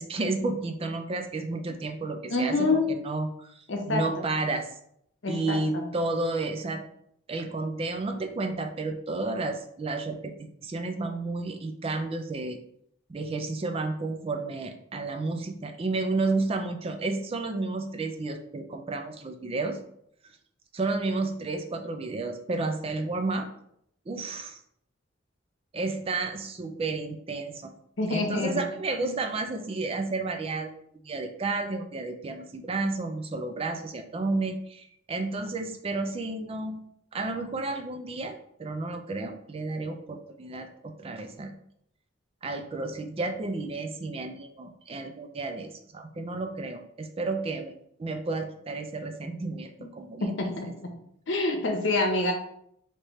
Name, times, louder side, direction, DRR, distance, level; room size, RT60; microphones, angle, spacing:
voice 1, 0.0-4.7 5.3-6.8 7.3-12.6 13.1-19.8 20.7-23.5 24.1-24.6 25.7-27.7 28.1-30.7 31.0-36.8 37.1-41.5 42.4-47.7 48.0-50.3, right 3 dB, 30° right, 6 dB, 0.4 m, -31 dB
voice 2, 2.3-2.9 3.7-4.2 5.2-5.8 28.0-28.6 29.0-29.2 50.2-50.9 51.3-52.3, left 2 dB, 70° left, 3 dB, 0.9 m, -27 dB
4.8 x 2.9 x 3.1 m, 0.72 s
head